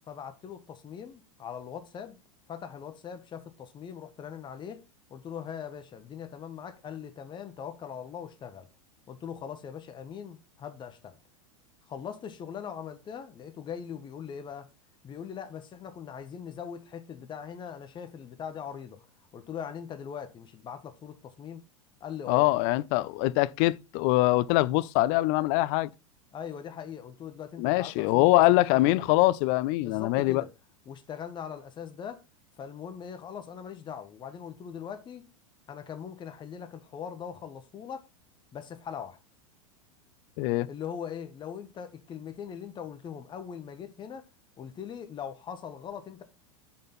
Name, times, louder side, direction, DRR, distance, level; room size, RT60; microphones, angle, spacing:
voice 1, 0.1-2.2 2.5-4.8 5.1-8.7 9.1-11.2 11.9-14.7 15.0-19.0 19.3-21.6 22.0-22.5 26.3-29.2 29.8-30.5 30.9-32.2 32.6-35.3 35.7-38.1 38.5-39.2 40.7-44.3 44.6-46.2, left 8 dB, 25° left, 1.0 m, -41 dB
voice 2, 22.3-25.9 27.6-30.4 40.4-40.7, left 18 dB, 45° left, 0.4 m, -23 dB
5.8 x 3.8 x 5.6 m
figure-of-eight pair, 85°, 17 cm